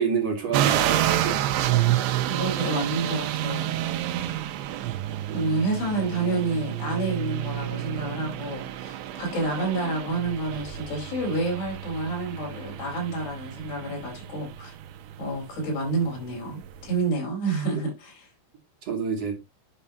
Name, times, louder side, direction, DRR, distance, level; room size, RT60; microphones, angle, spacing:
voice 1, 0.0-1.5 3.7-3.8 5.3-5.5 18.8-19.4, right 6 dB, 40° right, 2.9 m, -28 dB
sound 1, 0.5-17.1, right 13 dB, 80° right, 3.1 m, -29 dB
voice 2, 2.3-3.8 5.3-14.7 15.2-18.3, right 3 dB, 60° left, 6.1 m, -29 dB
10.0 x 7.3 x 2.9 m
omnidirectional pair, 5.2 m